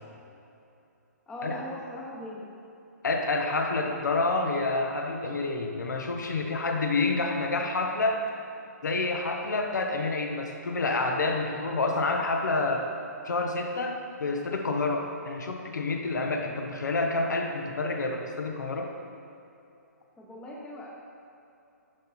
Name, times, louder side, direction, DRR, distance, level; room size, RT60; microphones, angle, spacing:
voice 1, 1.3-2.5 20.2-20.9, equal, 10° left, -3 dB, 0.9 m, -39 dB
voice 2, 3.0-8.2 8.8-12.9 13.2-18.9, left 3 dB, 85° left, 3 dB, 1.1 m, -28 dB
11.0 x 4.5 x 4.2 m, 2.8 s
hypercardioid pair, 160°, 9 cm